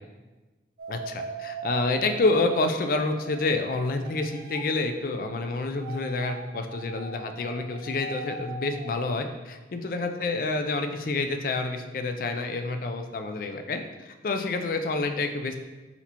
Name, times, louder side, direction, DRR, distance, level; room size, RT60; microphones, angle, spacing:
sound 1, 0.8-5.0 5.7-9.3, right 4 dB, 55° right, 0.4 m, -40 dB
voice 1, 0.9-15.6, left 3 dB, 50° left, 6 dB, 0.3 m, -28 dB
4.2 x 4.2 x 2.8 m, 1.2 s
head